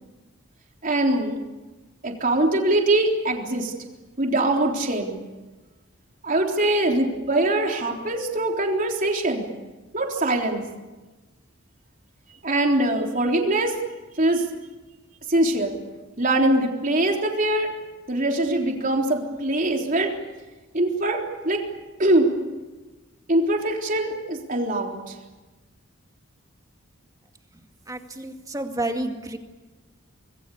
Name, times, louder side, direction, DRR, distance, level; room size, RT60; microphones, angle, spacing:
voice 1, 0.8-1.4 2.0-3.7 4.2-5.2 6.2-9.5 9.9-10.6 12.4-13.8 14.2-14.5 15.3-15.8 16.2-17.7 18.1-20.1 20.7-21.6 22.0-22.3 23.3-25.1, right 1 dB, 40° right, 1 dB, 3.7 m, -22 dB
voice 2, 27.9-29.4, right 1 dB, 15° right, 4 dB, 2.2 m, -30 dB
26.0 x 21.0 x 8.6 m, 1.2 s
head